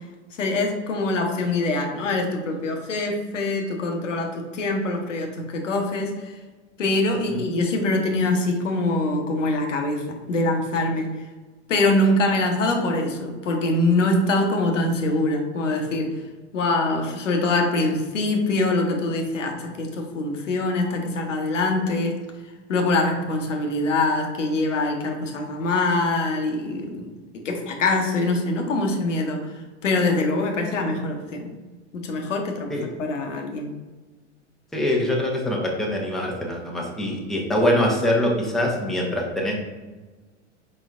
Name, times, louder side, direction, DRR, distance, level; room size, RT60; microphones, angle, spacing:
voice 1, 0.4-6.3 6.8-11.1 11.7-16.2 16.5-22.2 22.7-29.5 29.8-31.5 31.9-33.7, left 2 dB, 90° left, 2 dB, 0.9 m, -24 dB
voice 2, 34.7-39.5, left 1 dB, ahead, -2 dB, 0.8 m, -23 dB
4.7 x 4.1 x 2.4 m, 1.3 s
hypercardioid pair, 100°, 36 cm